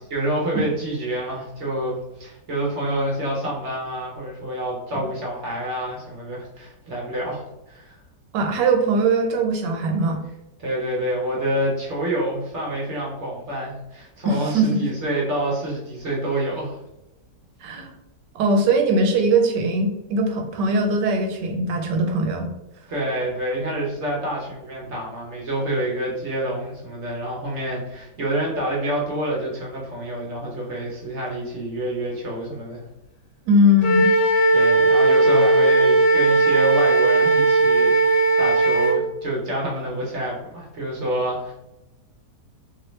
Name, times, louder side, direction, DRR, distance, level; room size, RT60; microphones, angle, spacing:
voice 1, 0.1-8.0 10.6-16.8 22.9-32.8 34.5-41.5, right 1 dB, 50° right, -3 dB, 1.0 m, -27 dB
voice 2, 8.3-10.2 14.3-14.8 17.6-17.9 18.3-22.5 33.5-34.1, right 1 dB, 85° right, 3 dB, 1.3 m, -20 dB
Wind instrument woodwind instrument, 33.8-39.0, right 2 dB, 65° left, 1.4 m, -17 dB
3.0 x 2.9 x 3.1 m, 0.93 s
omnidirectional pair, 1.8 m